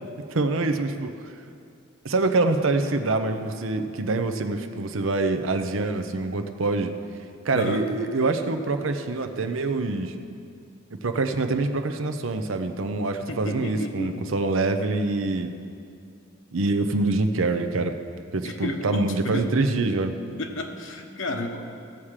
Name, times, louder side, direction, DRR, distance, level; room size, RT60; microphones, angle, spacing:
voice 1, 0.3-1.1 2.0-6.9 7.4-10.2 10.9-15.5 16.5-17.9 18.3-20.1, right 3 dB, 75° right, 7 dB, 0.7 m, -25 dB
voice 2, 7.5-7.8 13.3-14.3 18.4-19.5 20.4-21.6, left 2 dB, 70° left, 3 dB, 1.2 m, -32 dB
16.5 x 7.3 x 4.9 m, 2.4 s
head